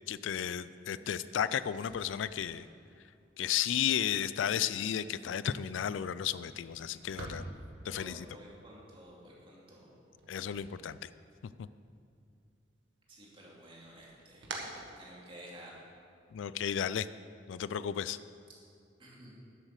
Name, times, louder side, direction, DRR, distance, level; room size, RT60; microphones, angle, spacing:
voice 1, 0.1-2.7 3.4-7.4 7.8-8.3 10.3-11.1 11.6-11.7 16.3-17.1 17.5-18.2, left 9 dB, 90° left, 15 dB, 0.4 m, -33 dB
sound 1, 1.6-11.5 11.8-12.7 13.1-15.7, right 2 dB, 80° right, 1.5 m, -50 dB
voice 2, 7.9-9.9 13.1-15.8 19.0-19.4, right 1 dB, 30° right, -4 dB, 2.6 m, -52 dB
11.0 x 7.4 x 6.6 m, 2.3 s
head